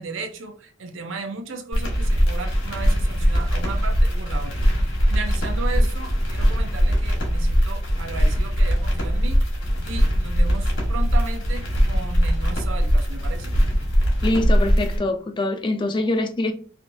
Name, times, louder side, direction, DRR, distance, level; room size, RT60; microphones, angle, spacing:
voice 1, 0.0-4.6 5.1-9.4 9.8-13.5, right 4 dB, 75° right, 0.6 m, -35 dB
sound 1, 1.7-15.0, equal, 75° left, 1.4 m, -21 dB
voice 2, 14.2-16.5, left 2 dB, 25° left, 0.4 m, -24 dB
3.4 x 2.6 x 2.6 m
head